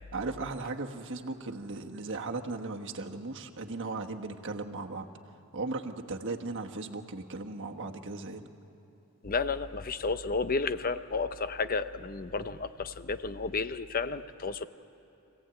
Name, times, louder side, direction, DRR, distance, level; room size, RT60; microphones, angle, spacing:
voice 1, 0.1-5.0 5.5-8.5, right 3 dB, 55° right, 3 dB, 1.3 m, -37 dB
voice 2, 9.2-14.7, left 4 dB, 40° left, 12 dB, 0.7 m, -32 dB
25.0 x 16.5 x 9.0 m, 2.9 s
head